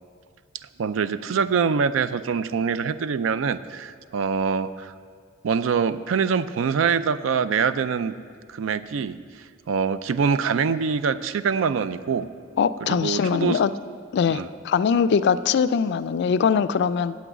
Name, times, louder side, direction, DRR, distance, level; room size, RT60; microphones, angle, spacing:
voice 1, 0.8-4.9 5.4-8.1 8.5-9.2 9.7-12.3 12.8-13.6 14.3-14.5, right 6 dB, 75° right, 14 dB, 0.4 m, -24 dB
voice 2, 12.6-13.7 14.1-17.1, left 6 dB, 60° left, 14 dB, 0.3 m, -22 dB
8.5 x 6.1 x 8.0 m, 2.1 s
head